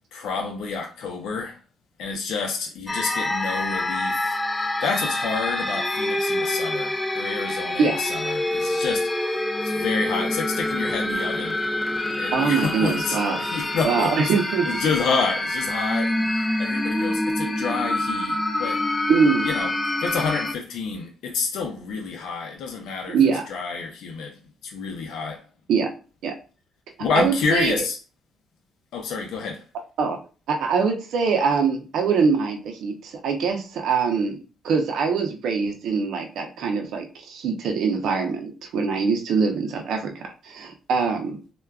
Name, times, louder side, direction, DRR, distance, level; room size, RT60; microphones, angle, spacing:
voice 1, 0.1-1.6 2.0-11.6 12.2-14.2 14.7-18.8 19.4-19.7 20.0-23.2 23.5-24.4 24.6-25.4 27.0-28.0 28.9-29.6, left 5 dB, 80° left, 0.5 m, -29 dB
sound 1, 2.9-20.5, left 1 dB, 15° left, 0.4 m, -26 dB
voice 2, 12.3-13.4 13.8-14.7 19.1-19.5 23.1-23.4 25.7-25.9 26.2-26.3 27.2-27.8 30.0-30.2 30.5-41.4, right 5 dB, 75° right, 0.5 m, -23 dB
3.4 x 2.2 x 2.3 m
cardioid pair, 90°, 0 cm